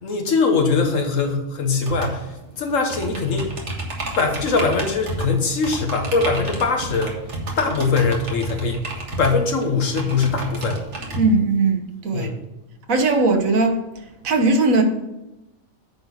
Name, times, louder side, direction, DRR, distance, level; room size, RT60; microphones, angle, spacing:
voice 1, 0.0-3.5 4.2-7.1 7.6-8.8 9.2-10.8 12.1-12.5, left 4 dB, 70° left, 3 dB, 1.6 m, -22 dB
sound 1, 1.9-11.2, right 2 dB, 60° right, 1.9 m, -31 dB
voice 2, 11.2-12.3 12.9-13.8 14.2-14.8, right 3 dB, 85° right, 4 dB, 1.5 m, -18 dB
9.5 x 4.4 x 6.4 m, 0.94 s
omnidirectional pair, 1.4 m